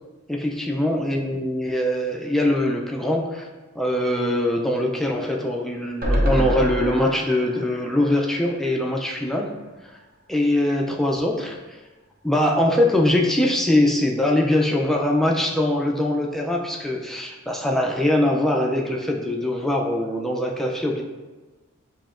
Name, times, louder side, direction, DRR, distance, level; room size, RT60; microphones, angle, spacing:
voice 1, 0.3-3.5 3.8-9.5 10.3-11.8 12.2-21.0, left 1 dB, ahead, 0 dB, 0.3 m, -22 dB
sound 1, 6.0-9.3 9.6-9.7 9.9-10.0, equal, 45° right, 0.6 m, -27 dB
7.0 x 2.7 x 2.5 m, 1.2 s
head